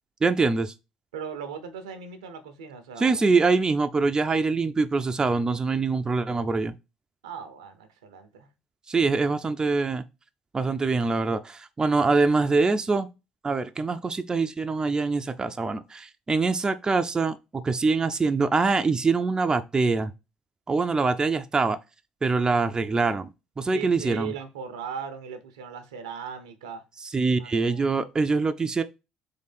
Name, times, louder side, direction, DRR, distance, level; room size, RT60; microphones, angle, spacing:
voice 1, 0.2-0.7 3.0-6.7 8.9-10.0 10.5-13.1 13.4-20.1 20.7-21.8 22.2-24.3 27.1-28.8, right 4 dB, 25° right, 0.5 m, -24 dB
voice 2, 1.1-3.2 7.2-8.5 23.7-26.8 27.4-28.0, right 7 dB, 85° right, 0.7 m, -38 dB
3.7 x 3.3 x 4.2 m
hypercardioid pair, 60°, 3 cm